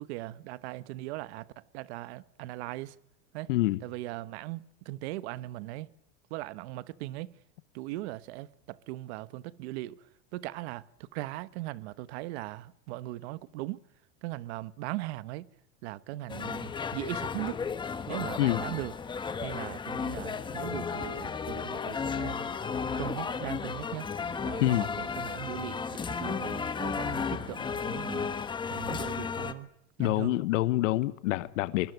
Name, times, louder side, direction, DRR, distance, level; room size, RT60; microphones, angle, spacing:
voice 1, 0.0-3.0 3.3-3.5 3.8-5.9 6.3-7.3 7.7-10.1 10.3-13.8 14.2-15.5 15.8-17.6 18.1-18.9 19.4-22.4 23.0-24.1 24.4-28.3 28.7-29.7 30.0-30.4, right 17 dB, 60° right, 1.1 m, -39 dB
voice 2, 3.5-3.8 18.4-18.6 24.6-24.9 30.0-31.9, left 17 dB, 85° left, 1.1 m, -26 dB
sound 1, 16.3-29.5, left 5 dB, 15° left, 1.2 m, -34 dB
24.5 x 21.0 x 9.3 m
supercardioid pair, 155°, 37 cm